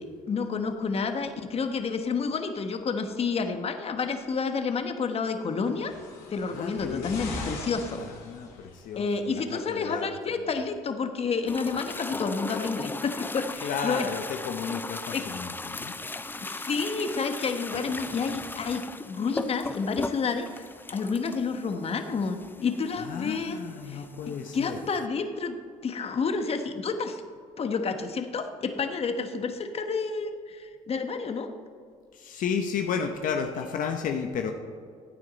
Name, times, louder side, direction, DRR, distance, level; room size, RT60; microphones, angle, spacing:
voice 1, 0.0-5.9 6.3-8.0 9.0-14.1 15.1-15.2 16.4-23.6 23.9-24.0 24.5-25.6 25.8-27.2 27.6-31.5, left 5 dB, 40° left, 7 dB, 1.1 m, -30 dB
sound 1, 5.6-9.0 9.9-10.0, left 2 dB, 85° left, 2.5 m, -40 dB
voice 2, 6.5-7.2 8.0-10.2 13.6-15.9 23.0-24.8 32.1-34.5, left 6 dB, 65° left, 4 dB, 0.9 m, -33 dB
sound 2, 11.5-25.1, left 3 dB, 15° left, 0.5 m, -38 dB
15.0 x 9.2 x 4.1 m, 2.2 s
supercardioid pair, 80°, 15 cm